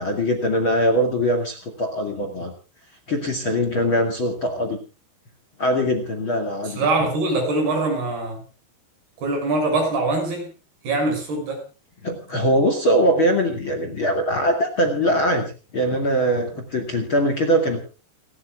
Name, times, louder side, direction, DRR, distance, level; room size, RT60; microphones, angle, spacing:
voice 1, 0.0-2.5 3.1-4.8 5.6-6.9 12.0-17.8, equal, 35° left, 5 dB, 2.5 m, -22 dB
voice 2, 6.7-8.4 9.2-10.5 10.8-11.6, right 2 dB, 65° right, 4 dB, 8.5 m, -23 dB
30.0 x 13.5 x 2.4 m, 0.34 s
omnidirectional pair, 4.9 m